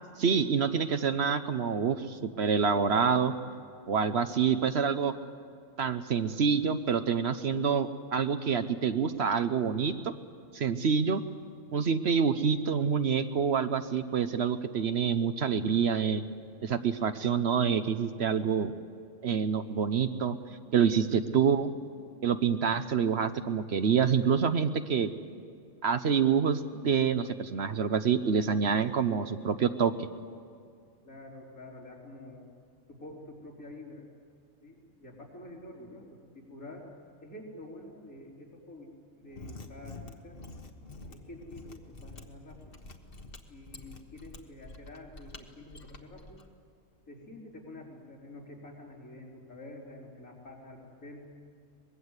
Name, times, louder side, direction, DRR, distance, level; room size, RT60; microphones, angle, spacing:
voice 1, 0.2-3.3 3.9-5.1 5.8-10.1 10.5-11.2 11.7-16.2 16.6-18.7 19.2-20.4 20.7-21.7 22.2-25.1 25.8-30.1, right 6 dB, 55° right, 10 dB, 1.0 m, -27 dB
voice 2, 31.0-32.5 32.9-34.1 34.6-36.9 37.2-40.4 41.1-42.8 43.5-46.4 47.0-51.3, left 1 dB, 85° left, -3 dB, 4.7 m, -48 dB
Mechanisms, 39.2-46.4, left 2 dB, 40° left, 1.6 m, -47 dB
24.0 x 21.0 x 8.2 m, 2.2 s
omnidirectional pair, 1.4 m